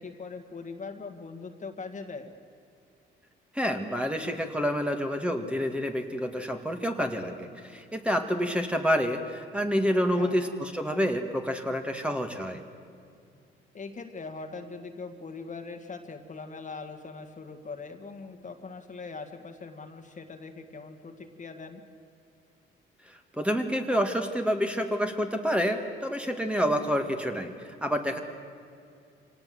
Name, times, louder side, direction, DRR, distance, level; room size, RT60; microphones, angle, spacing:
voice 1, 0.0-2.3 10.2-10.4 13.7-21.8, left 4 dB, 40° left, 6 dB, 1.9 m, -41 dB
voice 2, 3.5-12.6 23.1-28.2, equal, 5° right, 5 dB, 2.1 m, -28 dB
25.0 x 18.0 x 7.8 m, 2.4 s
cardioid pair, 90°, 20 cm